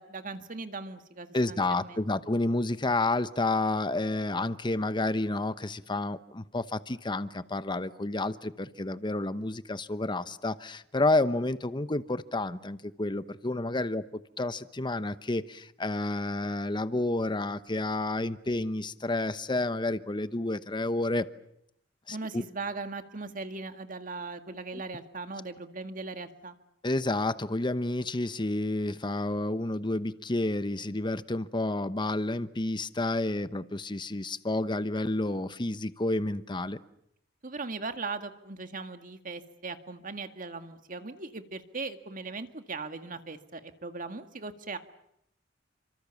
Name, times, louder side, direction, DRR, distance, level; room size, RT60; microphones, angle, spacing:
voice 1, 0.0-2.1 22.1-26.6 37.4-44.8, right 3 dB, 45° right, 8 dB, 1.9 m, -39 dB
voice 2, 1.3-21.3 22.1-22.4 24.7-24.8 26.8-36.8, left 2 dB, 25° left, 13 dB, 1.0 m, -30 dB
29.0 x 26.0 x 7.2 m, 0.76 s
head